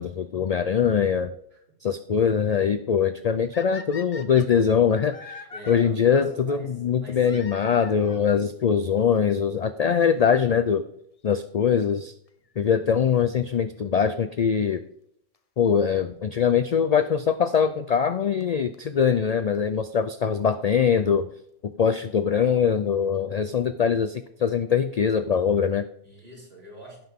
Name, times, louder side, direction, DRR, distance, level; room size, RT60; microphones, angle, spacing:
voice 1, 0.0-1.3 1.8-5.4 5.7-10.8 11.2-12.1 12.6-14.8 15.6-21.3 21.6-25.8, left 7 dB, 75° left, 11 dB, 0.3 m, -22 dB
sound 1, 3.5-5.7 7.2-8.3 9.2-9.3 10.0-10.1 10.3-10.4 12.3-12.5 15.3-15.4 16.5-16.6 18.0-18.1 18.4-18.5 18.7-18.8 19.0-19.1 19.3-19.4 19.5-19.6 19.9-20.0, left 4 dB, 35° left, 0.7 m, -42 dB
voice 2, 5.5-7.8 26.0-27.0, right 2 dB, 55° right, -4 dB, 3.8 m, -44 dB
17.0 x 5.8 x 3.6 m, 0.74 s
omnidirectional pair, 1.2 m